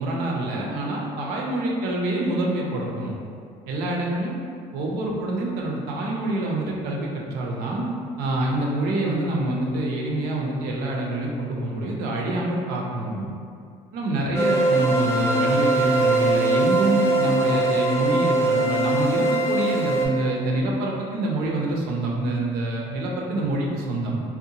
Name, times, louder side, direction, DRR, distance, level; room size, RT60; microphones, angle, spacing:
voice 1, 0.0-3.1 3.7-4.3 4.7-7.9 8.2-13.3 13.9-24.2, right 1 dB, 80° right, -1 dB, 0.5 m, -26 dB
sound 1, 14.3-20.1, right 2 dB, 15° left, 0.4 m, -21 dB
2.6 x 2.1 x 2.7 m, 2.3 s
cardioid pair, 110°, 16 cm